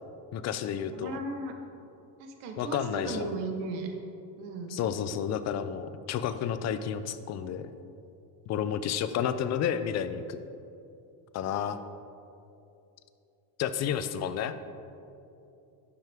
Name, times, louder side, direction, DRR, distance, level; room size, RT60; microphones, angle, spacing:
voice 1, 0.3-1.2 2.6-3.3 4.7-7.7 8.5-10.4 11.3-11.8 13.6-14.6, left 8 dB, 40° left, 11 dB, 0.4 m, -31 dB
voice 2, 0.9-1.5 2.2-3.9 4.4-4.8 11.4-11.6, right 3 dB, 85° right, 4 dB, 1.2 m, -36 dB
11.5 x 5.9 x 3.5 m, 2.7 s
cardioid pair, 130°, 43 cm